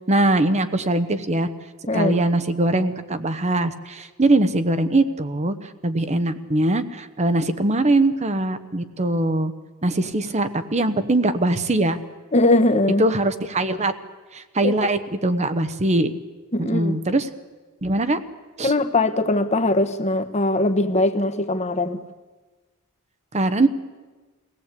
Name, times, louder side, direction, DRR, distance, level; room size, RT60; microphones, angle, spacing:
voice 1, 0.1-1.5 1.9-9.5 9.8-12.0 13.0-13.9 14.3-16.1 16.6-17.3 17.8-18.2 18.6-18.7 23.3-23.7, right 2 dB, 30° right, 10 dB, 1.0 m, -21 dB
voice 2, 12.3-13.0 14.6-14.7 16.5-17.0 18.6-22.0, left 2 dB, 30° left, 10 dB, 1.2 m, -20 dB
23.5 x 17.5 x 8.4 m, 1.3 s
head